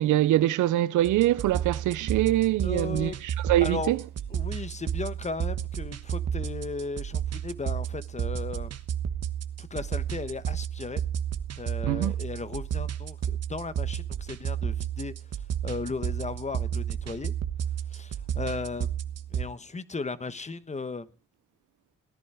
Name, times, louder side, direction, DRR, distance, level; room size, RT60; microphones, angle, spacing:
voice 1, 0.0-4.0 11.9-12.1, right 14 dB, 80° right, 0.7 m, -24 dB
sound 1, 1.0-19.5, right 9 dB, 55° right, 1.3 m, -32 dB
voice 2, 2.6-3.2 3.6-3.9 4.3-8.7 9.6-11.0 11.6-17.3 17.9-18.9 19.3-21.1, left 4 dB, 25° left, 1.1 m, -36 dB
17.0 x 11.0 x 4.8 m
cardioid pair, 90°, 30 cm